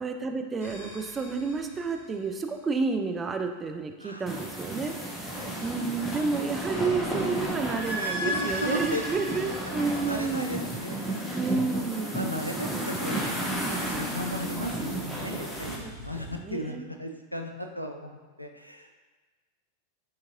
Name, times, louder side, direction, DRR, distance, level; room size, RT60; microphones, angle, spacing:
voice 1, 0.0-4.9 5.6-10.6 11.3-12.3 15.8-16.9, right 4 dB, 20° right, 5 dB, 0.3 m, -30 dB
sound 1, 0.6-2.5 6.4-11.0 13.5-16.3, equal, 85° right, 1.0 m, -39 dB
sound 2, 4.3-15.8, right 1 dB, ahead, 0.7 m, -33 dB
voice 2, 8.2-11.3 11.7-11.8 12.1-13.5 13.9-18.9, equal, 90° left, 4 dB, 0.3 m, -36 dB
4.9 x 2.8 x 2.5 m, 1.3 s
figure-of-eight pair, 90°, 0 cm